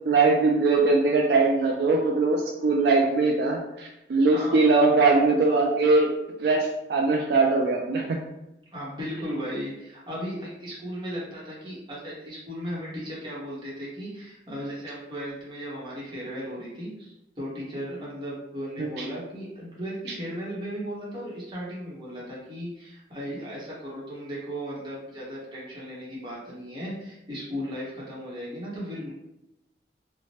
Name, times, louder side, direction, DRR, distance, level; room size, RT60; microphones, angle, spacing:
voice 1, 0.1-6.1 6.4-8.2 18.8-19.1, right 3 dB, 65° right, 1 dB, 0.3 m, -21 dB
voice 2, 4.3-4.7 8.7-29.1, equal, 25° right, -6 dB, 0.9 m, -36 dB
2.9 x 2.1 x 2.8 m, 0.89 s
head